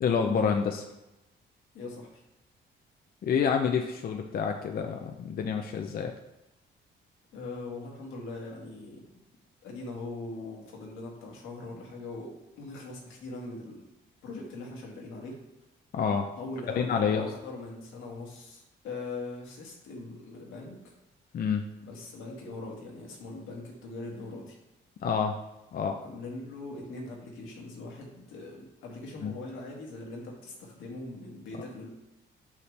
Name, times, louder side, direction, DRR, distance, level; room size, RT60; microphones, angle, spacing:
voice 1, 0.0-0.9 3.2-6.1 15.9-16.3 16.7-17.3 21.3-21.6 25.0-25.4 25.7-26.0 29.2-29.3, left 6 dB, 50° left, 4 dB, 0.6 m, -28 dB
voice 2, 1.7-2.2 7.3-9.1 9.6-13.8 14.2-15.4 16.4-20.9 21.8-24.6 26.0-31.9, left 2 dB, 85° left, -2 dB, 1.7 m, -41 dB
5.8 x 5.7 x 3.3 m, 0.95 s
cardioid pair, 90°, 20 cm